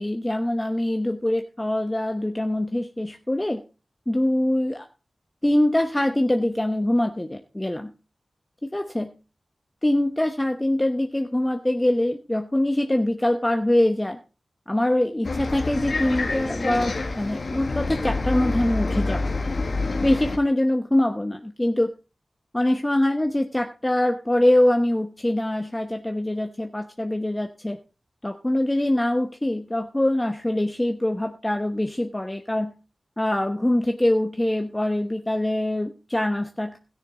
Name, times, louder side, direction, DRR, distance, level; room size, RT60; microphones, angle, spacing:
voice 1, 0.0-3.6 4.1-4.9 5.4-7.9 8.6-9.1 9.8-14.2 14.7-19.2 20.0-21.9 22.5-27.8 28.2-32.7 33.2-36.8, left 1 dB, 20° left, 5 dB, 0.9 m, -23 dB
Bus, 15.2-20.4, left 3 dB, 70° left, 1.6 m, -27 dB
13.5 x 10.0 x 3.9 m, 0.33 s
cardioid pair, 50°, 0 cm